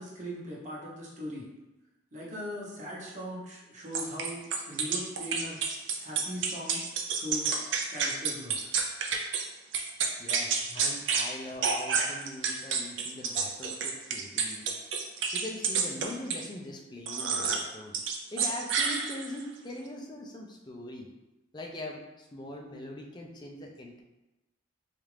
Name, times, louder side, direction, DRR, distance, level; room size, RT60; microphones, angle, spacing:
voice 1, 0.0-1.5 2.1-4.4 4.7-5.6 6.0-6.8 7.1-7.5 7.9-8.6, equal, 40° right, -5 dB, 0.9 m, -39 dB
sound 1, 3.9-9.4 9.7-11.3 11.6-16.5 17.1-17.7 17.9-19.4, right 5 dB, 70° right, 0.5 m, -29 dB
voice 2, 10.2-14.7 15.3-17.9 18.3-21.1 21.5-24.0, left 1 dB, 20° left, 0 dB, 0.5 m, -42 dB
4.3 x 2.5 x 3.2 m, 1.0 s
head